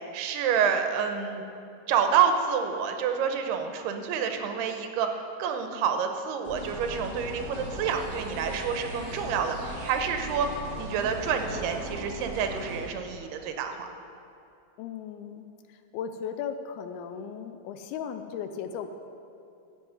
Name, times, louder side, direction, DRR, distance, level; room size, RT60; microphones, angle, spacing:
voice 1, 0.1-1.4 1.9-10.5 10.8-13.9, right 7 dB, 85° right, 6 dB, 2.8 m, -28 dB
sound 1, 6.4-12.8, right 1 dB, 30° right, 2.5 m, -38 dB
voice 2, 14.8-18.9, left 7 dB, 80° left, 8 dB, 2.4 m, -37 dB
13.5 x 5.5 x 8.1 m, 2.6 s
omnidirectional pair, 4.7 m